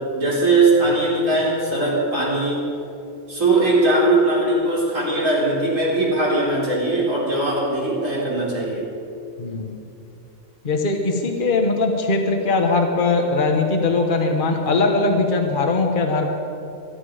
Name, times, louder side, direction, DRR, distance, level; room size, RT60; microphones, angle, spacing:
voice 1, 0.0-2.6 3.3-8.9, right 2 dB, 80° right, -5 dB, 4.4 m, -20 dB
voice 2, 9.4-9.7 10.6-16.3, left 3 dB, 40° left, 3 dB, 1.4 m, -20 dB
24.0 x 11.0 x 5.1 m, 2.7 s
omnidirectional pair, 1.3 m